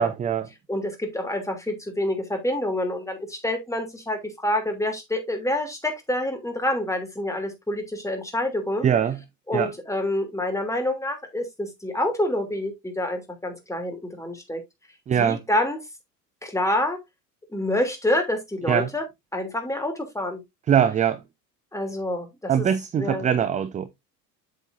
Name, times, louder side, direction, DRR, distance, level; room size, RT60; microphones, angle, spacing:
voice 1, 0.0-0.5 8.8-9.2 9.5-9.7 15.1-15.4 18.7-18.9 20.7-21.2 22.5-23.9, right 8 dB, 15° right, 0.5 m, -22 dB
voice 2, 0.7-8.9 9.5-14.6 15.2-15.8 16.4-17.0 17.5-19.0 19.3-20.4 21.7-22.7 23.0-23.2, left 1 dB, 5° left, 3.0 m, -27 dB
8.1 x 7.2 x 2.6 m
figure-of-eight pair, 75°, 50 cm